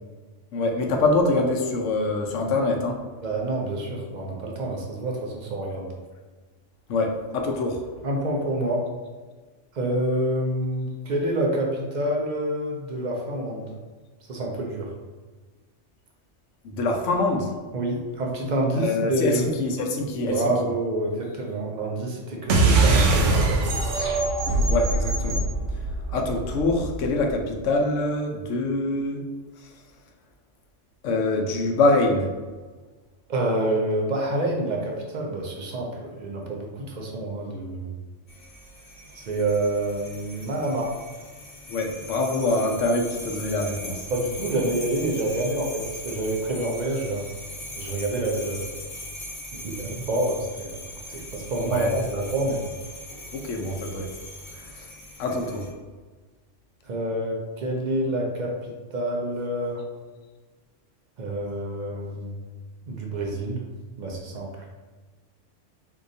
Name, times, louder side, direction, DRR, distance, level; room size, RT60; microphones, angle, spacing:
voice 1, 0.5-3.0 6.9-7.8 16.6-17.5 18.8-20.5 24.7-25.4 26.1-29.2 29.6-29.7 31.0-32.3 41.7-44.1 51.6-51.9 53.1-54.1 54.6-54.9 55.2-55.7, left 2 dB, 80° left, 2 dB, 0.9 m, -25 dB
voice 2, 3.2-5.9 8.0-8.8 9.7-13.7 14.3-14.9 17.7-19.5 20.3-23.8 33.3-37.9 39.2-40.9 44.1-47.3 47.7-48.6 49.5-50.8 51.1-52.7 56.9-59.8 61.2-62.4 62.9-63.7 64.0-64.5, right 1 dB, 60° right, -1 dB, 0.5 m, -27 dB
sound 1, 22.5-27.4, right 2 dB, 80° right, 0.9 m, -22 dB
sound 2, 38.3-55.7, left 1 dB, 55° left, 1.0 m, -40 dB
3.7 x 2.8 x 2.6 m, 1.3 s
omnidirectional pair, 1.3 m